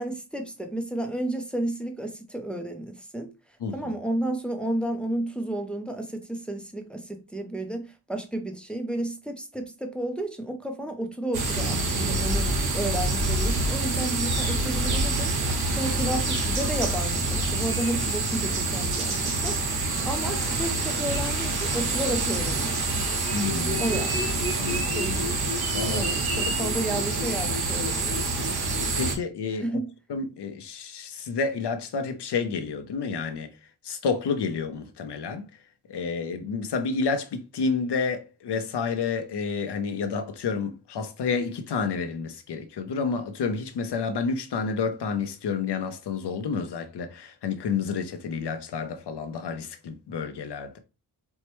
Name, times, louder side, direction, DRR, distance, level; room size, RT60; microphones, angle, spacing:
voice 1, 0.0-3.3 3.7-15.3 15.7-19.6 20.0-22.8 23.8-24.4 24.8-25.4 25.9-28.2 29.6-29.9, right 1 dB, 5° left, 0.4 m, -32 dB
voice 2, 3.6-3.9 23.3-24.0 24.6-25.2 25.7-26.0 26.5-26.6 28.8-29.8 30.1-33.5 33.8-35.5 35.9-50.8, left 5 dB, 75° left, 0.7 m, -30 dB
sound 1, 11.3-29.2, right 2 dB, 65° right, 1.0 m, -26 dB
4.5 x 2.1 x 3.0 m
wide cardioid pair, 165°, 41 cm